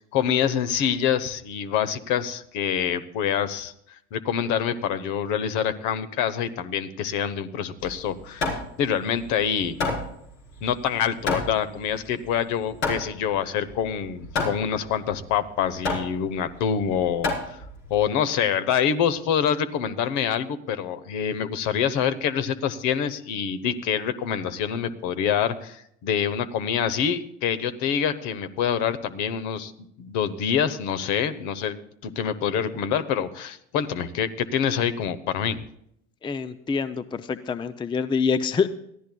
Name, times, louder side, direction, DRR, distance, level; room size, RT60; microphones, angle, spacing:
voice 1, 0.1-3.7 4.1-9.7 10.6-17.6 17.9-29.7 30.0-31.8 32.0-35.6, left 8 dB, 60° left, 12 dB, 1.0 m, -26 dB
Hammer, 7.8-18.0, left 3 dB, 75° left, 4.1 m, -31 dB
voice 2, 36.2-38.7, left 5 dB, 15° left, 13 dB, 0.5 m, -26 dB
21.5 x 14.0 x 2.3 m, 0.73 s
hypercardioid pair, 85°, 33 cm